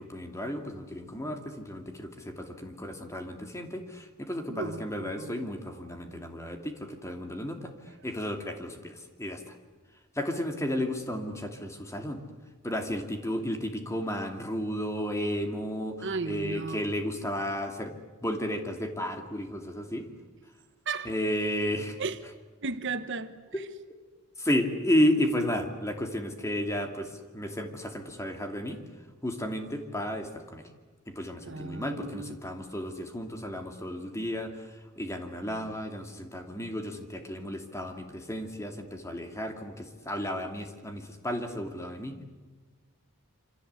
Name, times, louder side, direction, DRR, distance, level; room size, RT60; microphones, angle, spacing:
voice 1, 0.0-7.7 8.0-9.4 10.1-12.2 12.6-17.9 18.2-20.1 21.0-22.0 23.5-23.6 24.4-28.8 29.2-30.6 31.1-34.5 35.0-42.2, equal, 15° left, 2.7 m, -32 dB
voice 2, 4.5-5.5 16.0-16.9 20.9-21.1 22.0-22.2 22.6-23.4 31.4-32.4, right 4 dB, 55° right, 1.2 m, -35 dB
27.5 x 26.0 x 8.3 m
head